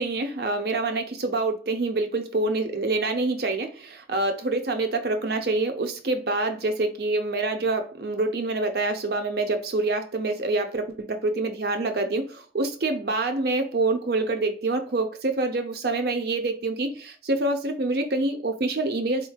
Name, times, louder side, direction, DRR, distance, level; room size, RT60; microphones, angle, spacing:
voice 1, 0.0-19.3, right 2 dB, 55° right, 0.6 m, -26 dB
4.4 x 3.0 x 2.3 m
head